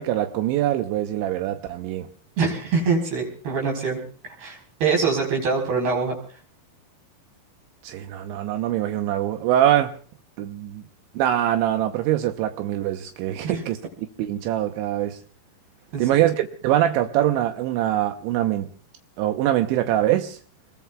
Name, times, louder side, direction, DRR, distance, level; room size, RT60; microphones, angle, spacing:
voice 1, 0.0-2.1 7.8-9.9 10.4-10.8 11.1-13.8 14.2-15.2 16.0-18.7 19.2-20.4, right 12 dB, 80° right, 3.2 m, -23 dB
voice 2, 2.4-6.2 13.4-13.6 15.9-16.2, right 4 dB, 55° right, 6.2 m, -24 dB
28.5 x 21.5 x 2.3 m
omnidirectional pair, 5.3 m